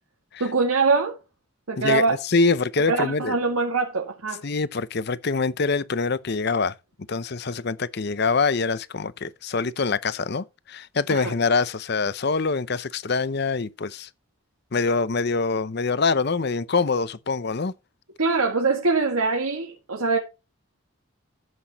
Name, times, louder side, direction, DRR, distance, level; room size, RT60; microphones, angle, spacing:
voice 1, 0.4-1.2 1.7-2.1 2.9-4.4 11.1-11.3 18.2-20.2, right 4 dB, 85° right, 2.0 m, -23 dB
voice 2, 1.8-3.4 4.4-6.7 7.1-14.1 14.7-17.7, left 4 dB, 50° left, 0.6 m, -24 dB
12.5 x 7.9 x 3.0 m
head